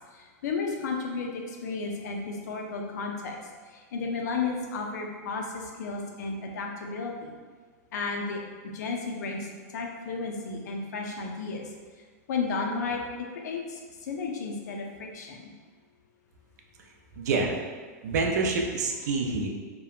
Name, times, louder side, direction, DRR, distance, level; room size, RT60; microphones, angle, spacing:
voice 1, 0.1-3.4 3.9-7.3 7.9-8.4 8.7-11.7 12.3-13.0 13.3-15.5, left 4 dB, 80° left, 1 dB, 0.5 m, -33 dB
voice 2, 17.2-17.5 18.0-19.5, right 3 dB, 75° right, 2 dB, 0.4 m, -27 dB
2.8 x 2.1 x 2.3 m, 1.5 s
supercardioid pair, 135°, 9 cm